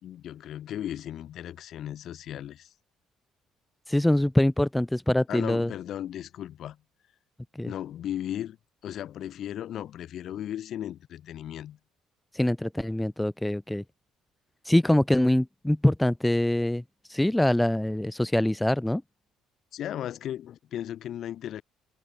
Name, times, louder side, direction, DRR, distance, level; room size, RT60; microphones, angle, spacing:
voice 1, 0.0-2.7 5.3-6.8 7.6-8.6 8.8-11.8 19.7-21.6, left 11 dB, 55° left, 2.5 m, -36 dB
voice 2, 3.9-5.7 7.5-7.7 12.3-13.8 14.6-16.8 17.1-19.0, left 1 dB, 5° left, 0.4 m, -24 dB
figure-of-eight pair, 50°, 0 cm